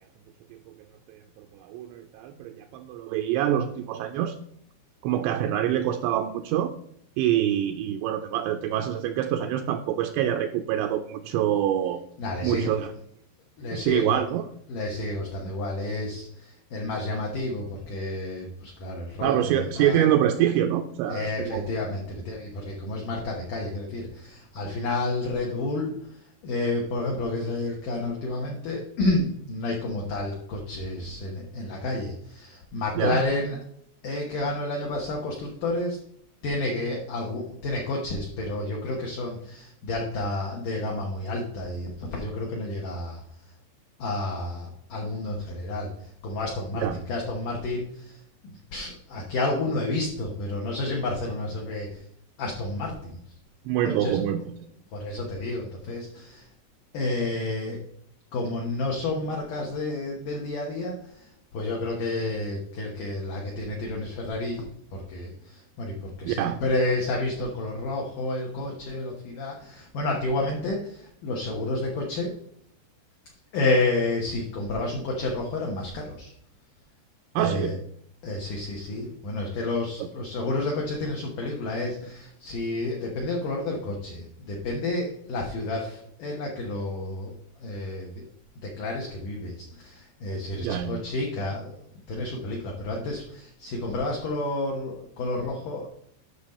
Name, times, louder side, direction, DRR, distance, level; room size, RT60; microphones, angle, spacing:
voice 1, 1.1-4.4 5.0-6.7 7.2-12.0 12.4-12.9 13.7-14.5 19.2-21.7 33.0-33.2 46.7-47.0 53.7-54.4 66.3-66.6 77.4-77.8 90.6-91.0, right 11 dB, 85° right, 6 dB, 2.7 m, -26 dB
voice 2, 12.2-12.7 13.6-14.2 14.7-20.1 21.1-26.0 26.4-33.6 34.0-36.0 36.4-43.2 44.0-52.0 52.4-53.2 53.8-54.2 54.9-56.5 56.9-57.8 58.3-64.7 64.9-72.3 73.5-76.3 77.4-77.8 78.2-87.4 87.6-88.2 88.6-95.9, left 2 dB, 70° left, -1 dB, 2.0 m, -30 dB
10.0 x 6.0 x 4.3 m, 0.69 s
omnidirectional pair, 5.4 m